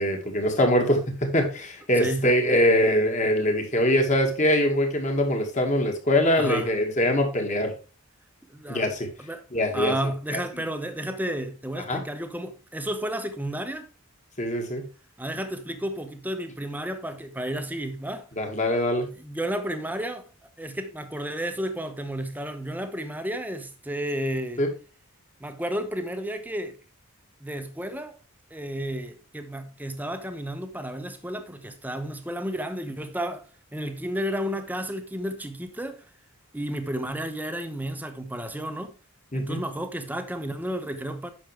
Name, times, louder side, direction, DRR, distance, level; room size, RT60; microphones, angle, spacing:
voice 1, 0.0-7.7 8.7-9.1 9.5-9.9 10.3-10.6 11.9-12.0 14.4-14.8 18.4-19.1 24.6-24.7 39.3-39.6, equal, 35° left, 2.0 m, -23 dB
voice 2, 1.9-2.3 6.4-6.7 8.5-8.9 9.2-9.4 9.7-13.9 15.2-18.3 19.2-20.2 20.6-24.6 25.4-26.8 27.4-28.2 28.5-36.0 36.5-38.9 39.3-41.3, right 1 dB, 10° right, 0.9 m, -32 dB
9.2 x 6.4 x 3.4 m
head